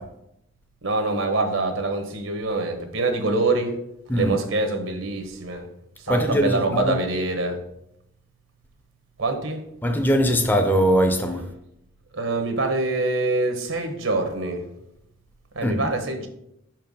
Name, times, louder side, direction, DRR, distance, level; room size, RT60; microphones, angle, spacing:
voice 1, 0.8-3.8 4.1-5.7 6.0-7.6 9.2-9.6 12.1-14.7 15.5-16.3, right 2 dB, 85° right, 1.1 m, -25 dB
voice 2, 6.1-7.0 9.8-11.5 15.6-15.8, equal, 10° left, 0.5 m, -21 dB
5.7 x 4.6 x 5.3 m
head